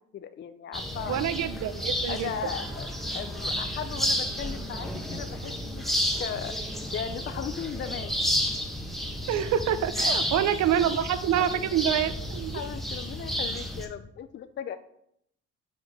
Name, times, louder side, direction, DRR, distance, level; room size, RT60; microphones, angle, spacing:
voice 1, 0.1-1.5 2.1-2.9 3.1-5.8 6.2-6.6 6.9-8.1 10.0-10.2 10.7-10.8 11.4-11.6 12.5-14.8, left 8 dB, 40° left, 10 dB, 0.4 m, -37 dB
sound 1, 0.7-13.9, equal, ahead, 0.9 m, -31 dB
voice 2, 1.1-2.3 9.3-12.6, right 10 dB, 65° right, 13 dB, 0.5 m, -26 dB
4.6 x 4.5 x 4.7 m, 0.74 s
cardioid pair, 90°, 30 cm